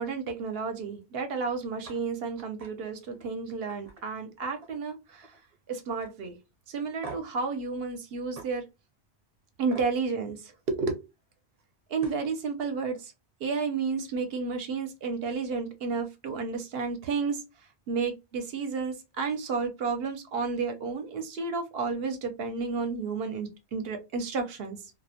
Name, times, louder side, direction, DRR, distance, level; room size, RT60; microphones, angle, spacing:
voice 1, 0.0-5.3 5.7-6.4 6.7-8.7 9.6-10.9 11.9-13.1 13.4-17.4 17.9-24.8, right 4 dB, 70° right, 0.8 m, -31 dB
sound 1, 1.8-2.0 2.4-2.7 3.1-3.3 3.7-4.9 5.1-5.6 6.0-6.1 7.0-7.4 8.3-8.5 9.7-9.9 11.6-11.7 12.0-12.3, right 3 dB, 40° right, 0.7 m, -44 dB
2.3 x 2.0 x 2.7 m
omnidirectional pair, 1.1 m